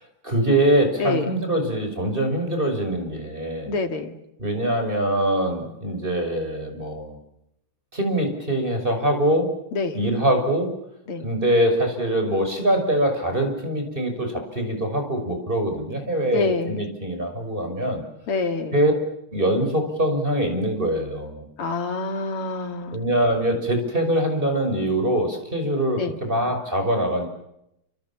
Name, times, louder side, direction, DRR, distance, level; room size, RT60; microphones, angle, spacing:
voice 1, 0.2-3.7 4.4-7.2 7.9-9.5 9.9-10.7 11.2-18.0 18.7-18.9 19.3-21.4 22.9-27.3, right 1 dB, 20° right, 5 dB, 6.2 m, -23 dB
voice 2, 3.7-4.1 9.7-10.0 11.1-11.3 16.3-16.8 18.3-18.8 21.6-23.1 26.0-26.1, left 4 dB, 85° left, 4 dB, 3.2 m, -26 dB
29.0 x 27.5 x 7.4 m, 0.81 s
omnidirectional pair, 2.4 m